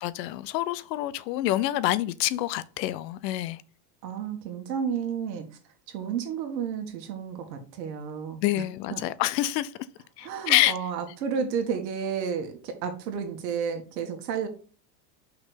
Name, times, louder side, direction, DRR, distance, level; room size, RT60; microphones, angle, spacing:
voice 1, 0.0-3.6 8.4-9.7 10.2-10.8, left 15 dB, 75° left, 0.8 m, -27 dB
voice 2, 4.0-5.5 5.9-8.6 8.9-9.0 10.2-14.5, right 7 dB, 85° right, 2.1 m, -31 dB
5.7 x 4.5 x 5.1 m
supercardioid pair, 115°, 49 cm